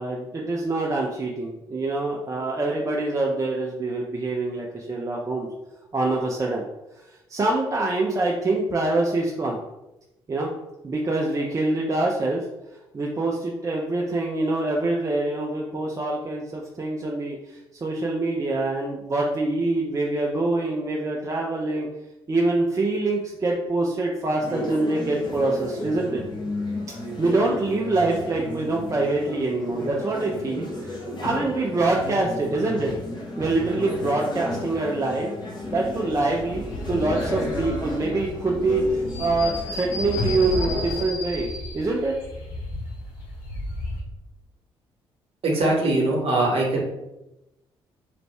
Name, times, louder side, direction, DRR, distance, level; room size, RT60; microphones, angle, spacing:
voice 1, 0.0-5.5 5.9-6.6 7.3-9.6 10.3-10.5 10.8-12.5 12.9-21.9 22.3-26.2 27.2-32.9 33.4-35.3 35.7-42.1, right 2 dB, 25° right, -2 dB, 0.5 m, -25 dB
sound 1, 24.4-41.1, left 1 dB, 35° left, 0.9 m, -33 dB
sound 2, 35.6-44.0, left 2 dB, 65° left, 0.7 m, -34 dB
voice 2, 45.4-46.8, right 2 dB, 45° right, -2 dB, 1.1 m, -21 dB
3.2 x 2.5 x 3.2 m, 0.95 s
figure-of-eight pair, 40°, 13 cm